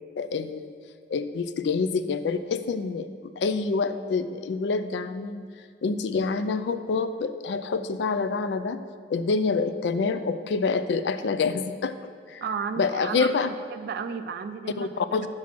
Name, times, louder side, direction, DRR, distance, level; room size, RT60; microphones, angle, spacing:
voice 1, 0.2-0.7 1.1-3.1 3.4-5.5 5.8-8.8 9.1-12.0 12.3-12.4 12.8-13.5 14.8-15.3, left 4 dB, 70° left, 11 dB, 0.3 m, -27 dB
voice 2, 12.4-13.3 13.7-14.9, right 6 dB, 55° right, 9 dB, 0.3 m, -32 dB
5.8 x 4.8 x 6.0 m, 2.1 s
head